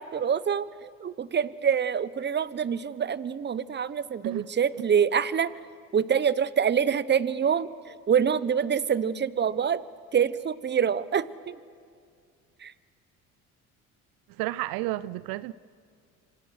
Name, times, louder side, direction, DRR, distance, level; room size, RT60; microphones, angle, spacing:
voice 1, 0.0-5.5 5.9-9.8 10.1-11.6 12.6-12.7, right 7 dB, 30° right, 18 dB, 0.9 m, -26 dB
voice 2, 14.4-15.5, right 17 dB, 75° right, 19 dB, 0.6 m, -31 dB
26.0 x 25.0 x 6.5 m, 2.2 s
supercardioid pair, 70°, 36 cm